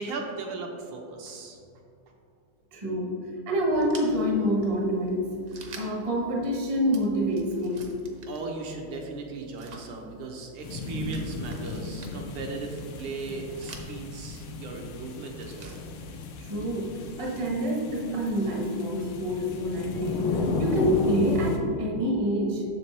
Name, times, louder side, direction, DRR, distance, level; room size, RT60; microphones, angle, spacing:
voice 1, 0.0-1.6 8.3-15.8, right 3 dB, 80° right, 1 dB, 1.7 m, -37 dB
voice 2, 2.7-3.2 3.5-5.4 5.7-7.9 16.4-22.6, equal, 30° right, -2 dB, 0.6 m, -27 dB
sound 1, 3.7-17.1, right 5 dB, 60° right, 1.3 m, -49 dB
sound 2, 10.6-21.6, left 3 dB, 80° left, 1.6 m, -34 dB
7.1 x 6.8 x 3.3 m, 2.5 s
omnidirectional pair, 2.4 m